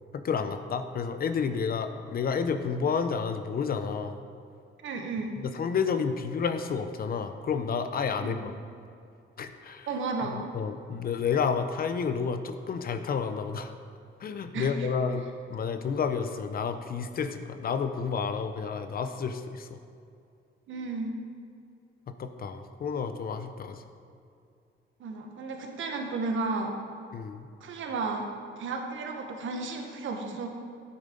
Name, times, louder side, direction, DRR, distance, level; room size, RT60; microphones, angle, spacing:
voice 1, 0.1-4.2 5.4-8.6 9.4-9.9 10.2-10.3 10.5-13.7 14.2-15.2 15.5-19.8 22.1-23.8 27.1-27.5, left 6 dB, 45° left, 9 dB, 0.6 m, -30 dB
voice 2, 4.8-5.3 8.2-8.4 9.9-10.4 14.5-14.9 20.7-21.2 25.0-26.8 27.6-28.3 28.6-30.5, right 3 dB, 70° right, 3 dB, 1.3 m, -33 dB
10.5 x 8.8 x 3.8 m, 2.4 s
cardioid pair, 120°, 21 cm